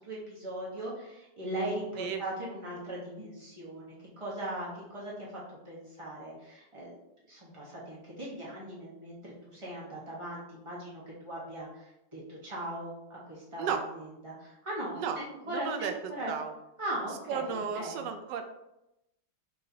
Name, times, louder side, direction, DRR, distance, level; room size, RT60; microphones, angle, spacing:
voice 1, 0.0-5.3 5.6-7.0 7.3-11.9 12.1-16.3 16.8-18.0, right 1 dB, 20° right, -6 dB, 1.0 m, -39 dB
voice 2, 15.5-15.9 16.3-16.5 17.3-18.4, right 6 dB, 75° right, 6 dB, 1.1 m, -33 dB
5.5 x 3.1 x 2.8 m, 0.89 s
omnidirectional pair, 2.0 m